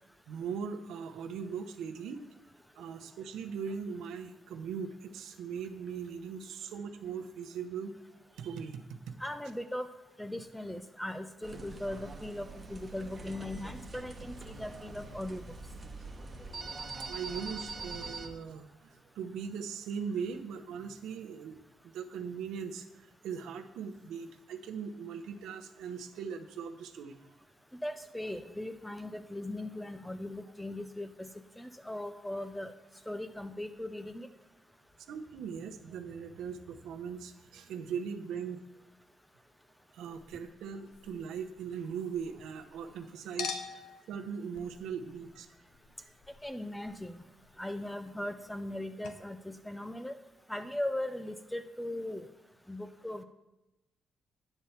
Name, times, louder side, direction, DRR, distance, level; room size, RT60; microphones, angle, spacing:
voice 1, 0.3-2.2 2.7-8.0 8.3-9.1 17.1-21.6 21.8-27.2 35.1-38.6 39.9-43.6 44.1-45.5 46.0-46.1, right 6 dB, 90° right, 6 dB, 0.8 m, -40 dB
voice 2, 9.2-9.9 10.2-15.5 27.8-31.3 31.6-32.7 33.1-34.3 46.4-47.2 47.6-50.2 50.5-52.3 52.7-53.2, left 1 dB, 5° left, 9 dB, 0.4 m, -39 dB
sound 1, 11.4-18.3, right 3 dB, 25° right, 1.2 m, -43 dB
Chink clink, 40.0-42.9 43.4-48.8 49.0-49.1, left 6 dB, 85° left, 0.8 m, -47 dB
9.4 x 4.4 x 7.1 m, 1.0 s
cardioid pair, 130°, 0 cm